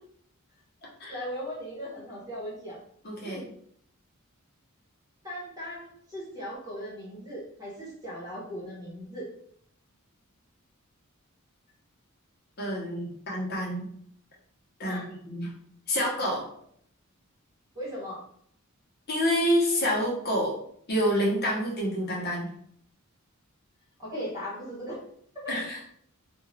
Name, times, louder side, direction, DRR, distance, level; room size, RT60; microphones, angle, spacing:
voice 1, 1.1-2.8 3.2-3.5 5.2-9.3 14.8-15.1 17.7-18.2 24.0-25.0 25.4-25.6, equal, 20° right, -7 dB, 1.0 m, -38 dB
voice 2, 3.0-3.4 12.6-13.9 14.8-15.5 15.9-16.5 19.1-20.6 20.9-22.5 25.5-25.8, equal, 50° left, -4 dB, 0.9 m, -28 dB
2.5 x 2.3 x 3.2 m, 0.66 s
head